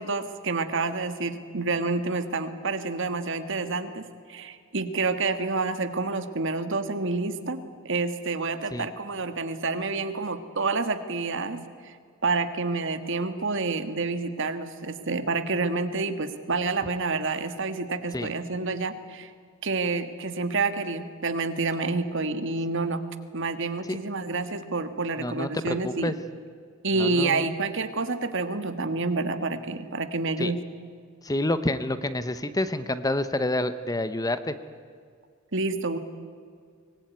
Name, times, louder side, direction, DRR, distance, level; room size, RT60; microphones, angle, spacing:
voice 1, 0.0-12.0 12.2-19.3 19.6-23.0 23.3-26.2 26.8-30.6 35.5-36.0, right 3 dB, 60° right, 10 dB, 1.7 m, -28 dB
voice 2, 25.2-25.5 25.8-26.1 27.0-27.5 30.4-30.5 31.2-34.5, left 1 dB, 15° left, 12 dB, 0.8 m, -28 dB
24.0 x 19.5 x 9.4 m, 2.1 s
head